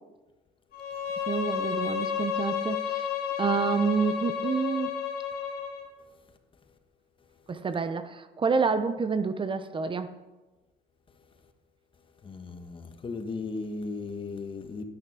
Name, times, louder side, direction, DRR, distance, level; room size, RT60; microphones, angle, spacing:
Bowed string instrument, 0.7-5.9, left 8 dB, 65° left, 2.1 m, -31 dB
voice 1, 1.3-3.1 3.4-4.9 7.5-10.1, right 5 dB, 30° right, 0.7 m, -28 dB
voice 2, 12.2-14.8, left 3 dB, 30° left, 1.3 m, -36 dB
10.0 x 9.6 x 6.0 m
cardioid pair, 110°, 17 cm